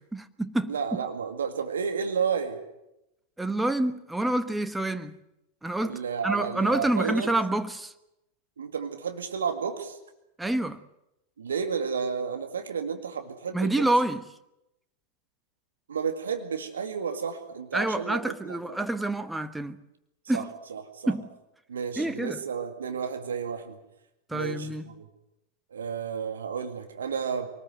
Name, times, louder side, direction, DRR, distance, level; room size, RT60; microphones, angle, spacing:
voice 1, 0.0-0.7 3.4-5.2 5.6-7.9 10.4-10.8 13.5-14.2 17.7-19.8 20.3-20.5 21.1-21.3 22.0-22.4 24.3-24.9, right 1 dB, 5° right, 1.3 m, -27 dB
voice 2, 0.7-2.6 5.8-7.4 8.6-10.0 11.4-13.9 15.9-18.6 20.3-20.4 20.7-21.1 21.7-23.8 24.3-25.1 25.7-27.5, right 6 dB, 65° right, 2.1 m, -32 dB
24.0 x 19.5 x 7.9 m
figure-of-eight pair, 90°, 0 cm